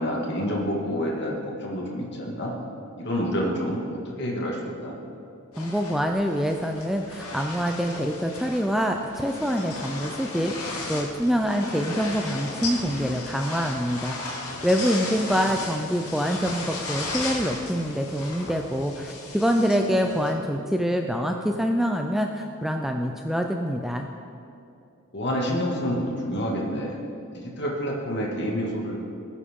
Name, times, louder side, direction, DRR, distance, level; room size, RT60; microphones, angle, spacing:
voice 1, 0.0-2.5 3.0-4.9 25.1-27.0 27.3-28.9, equal, 50° left, -2 dB, 2.0 m, -28 dB
sound 1, 5.5-20.3, left 2 dB, 85° left, 2.2 m, -36 dB
voice 2, 5.6-14.4 14.6-24.1, equal, ahead, 3 dB, 0.4 m, -25 dB
19.5 x 8.5 x 3.7 m, 2.6 s
head